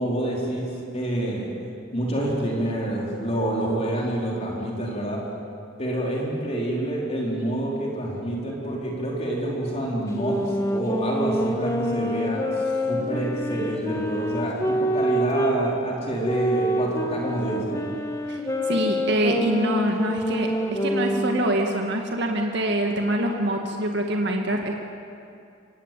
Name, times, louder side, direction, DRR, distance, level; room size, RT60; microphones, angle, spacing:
voice 1, 0.0-5.2 5.8-17.8, right 1 dB, 30° left, -3 dB, 4.2 m, -27 dB
sound 1, 10.1-15.6 16.2-21.4, equal, 15° left, 1.9 m, -26 dB
voice 2, 18.7-24.7, right 1 dB, 55° right, 2 dB, 1.9 m, -25 dB
25.5 x 18.0 x 9.2 m, 2.5 s
head